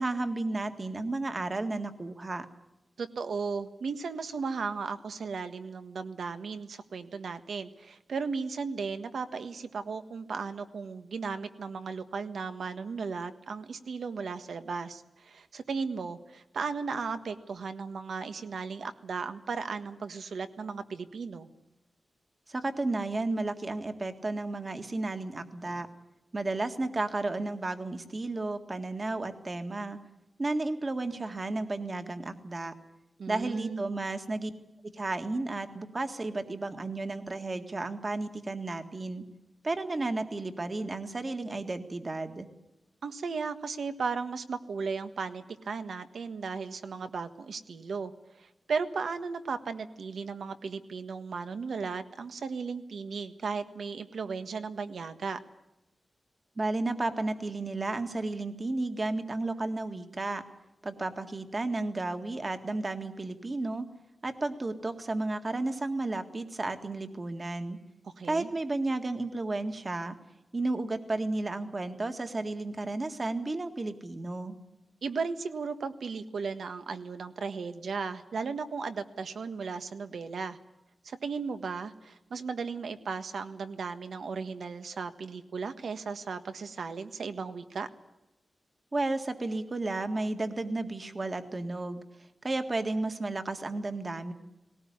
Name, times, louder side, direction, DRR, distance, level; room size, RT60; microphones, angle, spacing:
voice 1, 0.0-2.5 22.5-25.9 26.3-30.0 30.4-32.7 33.3-34.5 34.9-39.2 39.6-42.5 56.6-60.4 60.8-63.9 64.2-67.8 68.3-70.1 70.5-74.6 88.9-92.0 92.4-94.3, right 2 dB, 35° right, 7 dB, 1.8 m, -33 dB
voice 2, 3.0-21.5 33.2-33.8 43.0-55.4 68.0-68.5 75.0-80.6 81.0-87.9, right 5 dB, 80° right, 9 dB, 1.5 m, -36 dB
19.5 x 18.0 x 9.6 m, 0.94 s
wide cardioid pair, 110°, 0 cm